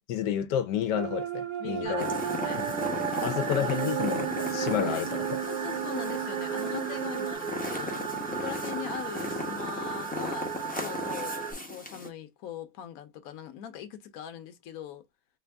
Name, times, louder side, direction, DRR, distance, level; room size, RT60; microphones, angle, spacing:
voice 1, 0.1-2.1 2.6-2.7 3.1-5.4, left 9 dB, 90° left, 1.3 m, -30 dB
sound 1, 0.9-7.3, right 10 dB, 85° right, 1.2 m, -34 dB
voice 2, 1.6-2.6 3.2-3.7 4.8-5.1 5.4-15.1, left 10 dB, 65° left, 1.1 m, -41 dB
sound 2, 1.8-11.5, right 7 dB, 45° right, 0.7 m, -36 dB
sound 3, 2.0-12.1, left 2 dB, 10° left, 0.4 m, -37 dB
3.4 x 2.5 x 3.4 m
omnidirectional pair, 1.8 m